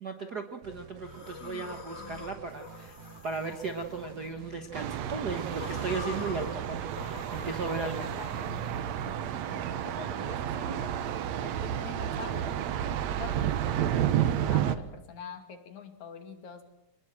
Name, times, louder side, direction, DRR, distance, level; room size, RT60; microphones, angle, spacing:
voice 1, 0.0-8.0, right 4 dB, 50° right, 5 dB, 1.2 m, -36 dB
sound 1, 0.6-14.8, right 6 dB, 85° right, 3.1 m, -50 dB
sound 2, 1.0-4.6 5.1-8.8, left 4 dB, 25° left, 1.7 m, -46 dB
voice 2, 1.4-2.3 7.4-11.0 11.4-16.6, left 7 dB, 65° left, 8 dB, 3.5 m, -46 dB
Thunder, 4.7-14.8, right 10 dB, 65° right, 2.1 m, -31 dB
27.0 x 19.5 x 7.6 m, 0.82 s
omnidirectional pair, 3.6 m